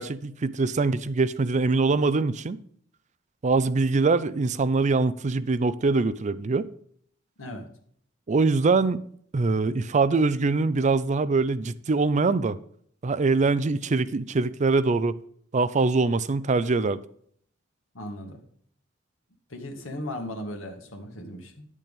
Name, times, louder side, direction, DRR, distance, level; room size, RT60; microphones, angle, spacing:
voice 1, 0.0-2.6 3.4-6.7 8.3-9.0 9.3-12.6 13.0-15.2 15.5-17.0, right 3 dB, 35° right, 0.4 m, -23 dB
voice 2, 17.9-18.4 19.5-21.7, left 1 dB, 85° left, 2.0 m, -37 dB
10.5 x 8.3 x 3.6 m
head